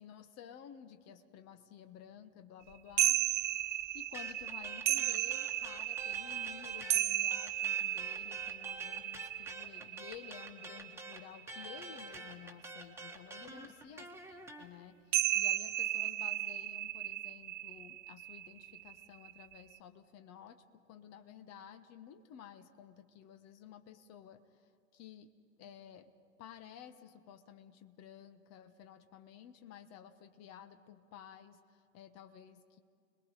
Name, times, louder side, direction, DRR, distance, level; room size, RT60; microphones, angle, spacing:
voice 1, 0.0-3.6 3.9-25.3 25.6-26.1 26.4-32.8, left 9 dB, 40° left, 10 dB, 1.4 m, -53 dB
sound 1, 3.0-11.6 15.1-19.8, right 13 dB, 65° right, 0.7 m, -35 dB
sound 2, 4.1-7.0 7.3-14.6, right 2 dB, 5° right, 1.6 m, -47 dB
30.0 x 21.0 x 5.0 m, 2.2 s
figure-of-eight pair, 85°, 40 cm